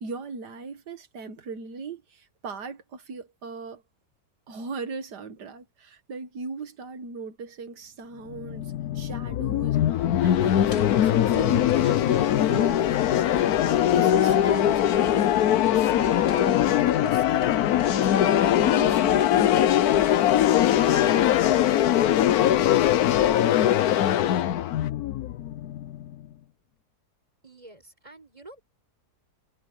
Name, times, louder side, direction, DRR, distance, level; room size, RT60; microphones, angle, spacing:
voice 1, 0.0-3.8 4.5-12.9 13.9-15.4 15.7-20.0 20.3-20.5 20.9-21.4, right 5 dB, 90° right, 2.1 m, -38 dB
sound 1, 8.3-26.1, left 11 dB, 70° left, 1.2 m, -21 dB
sound 2, 10.0-23.3, left 2 dB, 40° left, 2.5 m, -45 dB
sound 3, 11.2-16.9, right 5 dB, 60° right, 2.0 m, -50 dB
voice 2, 27.4-28.6, right 2 dB, 20° right, 6.8 m, -48 dB
omnidirectional pair, 1.7 m